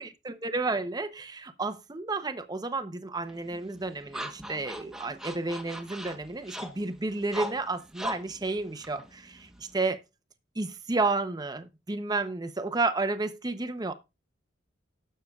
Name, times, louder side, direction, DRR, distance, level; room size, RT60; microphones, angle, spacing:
voice 1, 0.0-10.0 10.6-13.9, right 3 dB, 20° right, 0.7 m, -31 dB
sound 1, 3.3-9.8, equal, ahead, 1.0 m, -41 dB
18.5 x 6.6 x 2.3 m
head